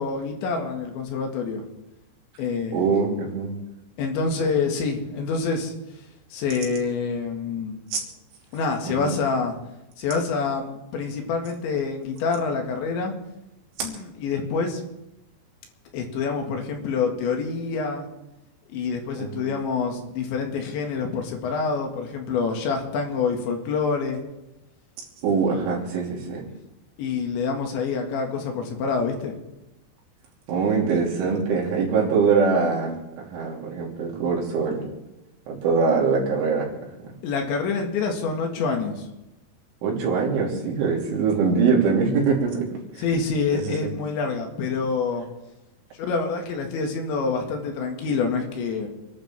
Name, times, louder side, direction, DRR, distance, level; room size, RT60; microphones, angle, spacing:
voice 1, 0.0-1.6 2.4-2.8 4.0-5.7 6.3-7.8 8.5-9.5 10.0-13.1 13.8-14.8 15.9-18.1 18.7-24.2 25.7-25.9 27.0-29.3 37.2-39.1 43.0-45.3 46.0-48.9, left 4 dB, 75° left, 2 dB, 4.1 m, -26 dB
voice 2, 2.7-3.5 7.9-8.0 8.9-9.1 13.8-13.9 19.2-19.5 25.2-26.5 30.5-34.9 35.5-36.7 39.8-42.7 43.5-43.9, right 5 dB, 90° right, -2 dB, 5.5 m, -23 dB
27.5 x 12.0 x 3.6 m, 0.93 s
omnidirectional pair, 5.4 m